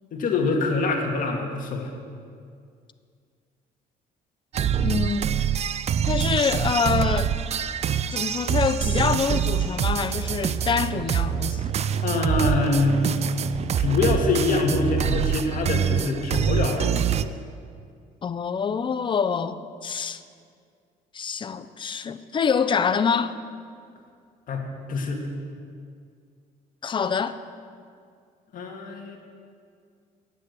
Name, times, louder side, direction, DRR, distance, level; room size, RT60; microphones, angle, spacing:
voice 1, 0.1-1.9 12.0-13.0 13.8-17.0 24.5-25.2 28.5-29.2, left 3 dB, 55° left, 1 dB, 2.0 m, -24 dB
sound 1, 4.5-17.2, right 8 dB, 40° right, 0.4 m, -25 dB
voice 2, 4.8-5.4 6.1-7.3 8.1-11.7 18.2-20.2 21.1-23.4 26.8-27.4, left 6 dB, 30° left, 12 dB, 0.6 m, -26 dB
10.0 x 8.5 x 8.0 m, 2.2 s
cardioid pair, 110°, 17 cm